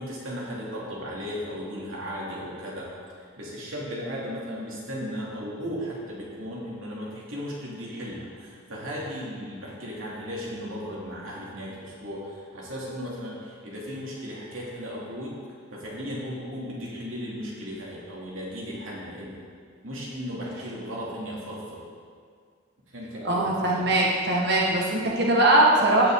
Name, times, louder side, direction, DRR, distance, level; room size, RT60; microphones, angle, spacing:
voice 1, 0.0-2.9 3.2-15.3 15.7-19.4 19.8-21.8 22.9-23.9, equal, 75° right, -5 dB, 2.8 m, -36 dB
voice 2, 23.2-26.1, right 1 dB, 50° right, -3 dB, 1.5 m, -21 dB
16.5 x 6.3 x 3.8 m, 2.1 s
head